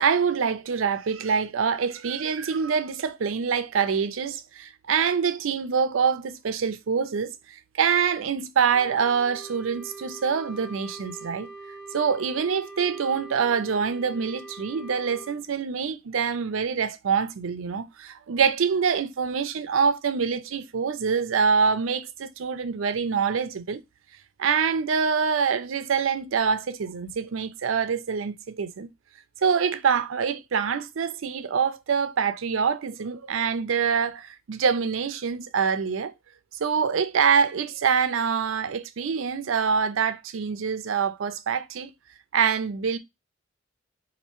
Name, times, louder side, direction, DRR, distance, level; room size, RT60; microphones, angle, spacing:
voice 1, 0.0-11.5 11.9-23.8 24.4-28.9 29.4-36.1 36.6-41.9 42.3-43.0, right 6 dB, 85° right, 0.5 m, -25 dB
Wind instrument woodwind instrument, 8.7-15.4, right 3 dB, 25° left, 1.9 m, -43 dB
4.2 x 2.6 x 3.0 m
head